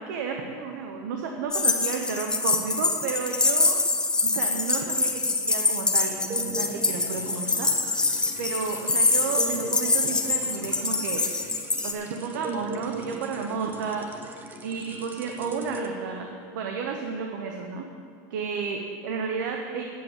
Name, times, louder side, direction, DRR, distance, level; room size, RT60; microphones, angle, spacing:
voice 1, 0.0-3.8 4.2-11.3 11.8-14.1 14.6-17.9 18.3-19.8, right 5 dB, 80° right, 3 dB, 1.0 m, -32 dB
sound 1, 1.5-11.9, left 3 dB, 10° left, 0.7 m, -25 dB
sound 2, 6.1-16.6, right 3 dB, 20° right, 0.8 m, -39 dB
9.5 x 7.6 x 7.3 m, 2.5 s
supercardioid pair, 145°, 10 cm